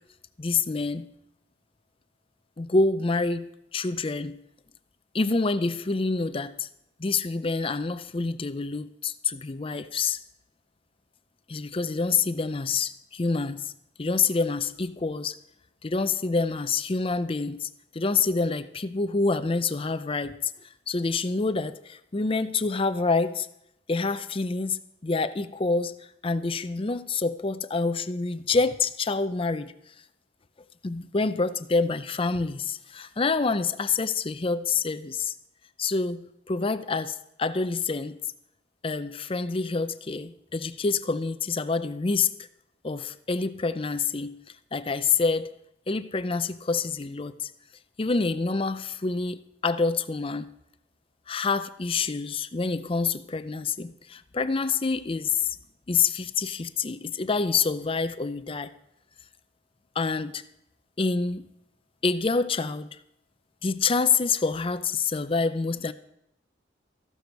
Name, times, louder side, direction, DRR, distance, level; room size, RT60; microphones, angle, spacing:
voice 1, 0.4-1.1 2.6-4.4 5.1-6.7 7.0-10.2 11.5-13.7 14.0-15.4 15.8-20.4 20.9-23.5 23.9-26.0 26.2-29.7 30.8-35.3 35.8-38.2 38.8-42.3 42.8-44.4 44.7-45.5 45.9-47.5 48.0-50.5 51.3-55.6 55.9-58.7 60.0-60.4 61.0-61.5 62.0-62.9 63.6-65.9, left 4 dB, 30° left, 0.5 m, -27 dB
14.5 x 12.0 x 4.6 m
head